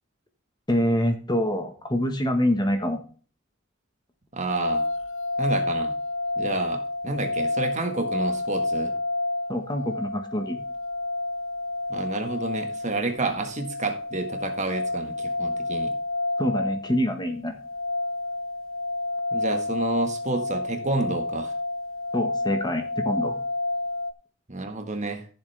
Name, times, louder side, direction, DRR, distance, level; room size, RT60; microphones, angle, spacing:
voice 1, 0.7-3.0 9.5-10.6 16.4-17.6 22.1-23.4, equal, 20° left, 6 dB, 1.3 m, -25 dB
voice 2, 4.3-4.8 5.4-5.9 6.4-8.9 11.9-15.9 19.3-21.5 24.5-25.3, right 3 dB, 35° right, 6 dB, 1.5 m, -29 dB
sound 1, 4.5-24.1, left 2 dB, 65° left, 0.7 m, -29 dB
14.5 x 7.1 x 3.4 m, 0.41 s
head